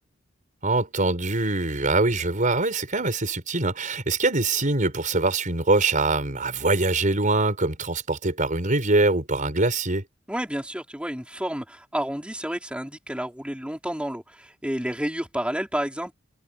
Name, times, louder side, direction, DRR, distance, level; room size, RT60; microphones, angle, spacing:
voice 1, 0.6-10.0, right 2 dB, 40° right, 4.9 m, -23 dB
voice 2, 10.3-16.1, right 1 dB, 5° right, 3.9 m, -30 dB
head